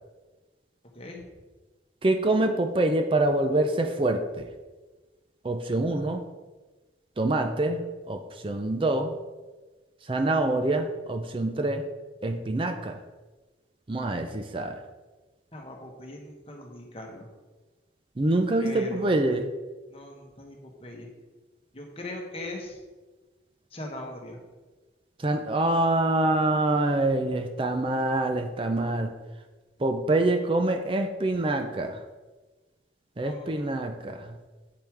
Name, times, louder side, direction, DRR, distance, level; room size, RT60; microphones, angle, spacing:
voice 1, 2.0-4.5 5.4-6.2 7.2-9.1 10.0-11.8 12.2-13.0 13.9-14.8 18.2-19.5 25.2-29.1 29.8-32.0 33.2-34.4, right 2 dB, 30° right, 6 dB, 0.4 m, -25 dB
voice 2, 15.5-17.3 18.6-19.3 19.9-21.1 21.7-22.8 23.7-24.4 33.2-33.8, left 1 dB, 30° left, 1 dB, 1.3 m, -40 dB
8.6 x 5.5 x 4.6 m, 1.3 s
head